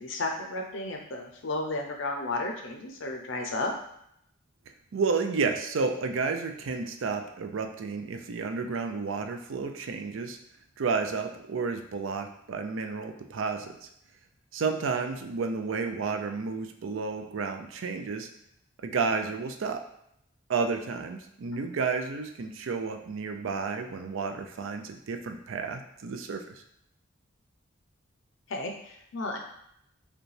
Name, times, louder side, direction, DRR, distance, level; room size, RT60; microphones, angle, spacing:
voice 1, 0.0-3.7 28.5-29.4, left 2 dB, 75° left, 2 dB, 0.5 m, -33 dB
voice 2, 4.9-10.4 10.8-13.9 14.5-18.3 18.8-19.8 20.5-26.6, right 4 dB, 85° right, 6 dB, 0.4 m, -31 dB
4.9 x 2.2 x 3.2 m, 0.75 s
head